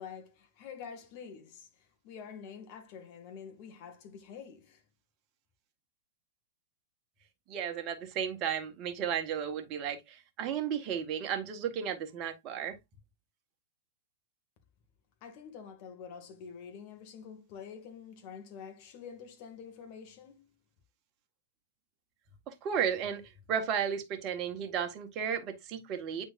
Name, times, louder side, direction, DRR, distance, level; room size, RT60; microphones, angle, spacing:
voice 1, 0.0-4.8 15.2-20.6, left 7 dB, 45° left, 2.2 m, -47 dB
voice 2, 7.5-12.8 22.5-23.2 23.5-26.2, right 8 dB, 40° right, 1.7 m, -34 dB
9.0 x 4.4 x 2.6 m
hypercardioid pair, 115°, 0 cm